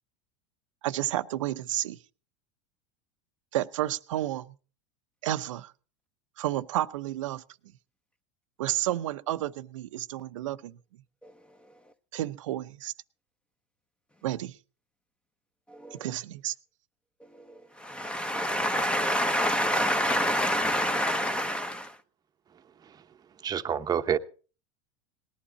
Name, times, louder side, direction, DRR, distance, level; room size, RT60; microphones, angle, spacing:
voice 1, 0.8-2.0 3.5-4.5 5.2-5.7 6.4-7.4 8.6-10.8 12.1-12.9 14.2-14.6 15.9-16.5, right 13 dB, 85° right, 0.7 m, -31 dB
voice 2, 15.7-16.1 17.3-22.0, equal, 5° left, 0.9 m, -27 dB
voice 3, 23.4-24.2, right 8 dB, 25° right, 0.9 m, -27 dB
19.5 x 11.5 x 4.1 m
supercardioid pair, 120°, 16 cm